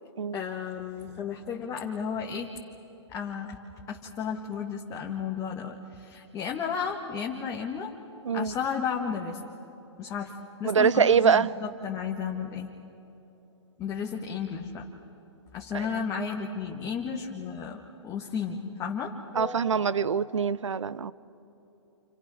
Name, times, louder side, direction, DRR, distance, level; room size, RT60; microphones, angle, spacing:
voice 1, 0.3-2.5 3.1-3.6 3.9-7.9 8.3-9.4 10.0-12.7 13.8-14.9 15.5-19.8, left 6 dB, 20° left, 1.6 m, -33 dB
voice 2, 10.6-11.5 15.7-15.9 19.4-21.1, right 6 dB, 85° right, 0.7 m, -24 dB
28.5 x 28.5 x 6.3 m
hypercardioid pair, 135°, 15 cm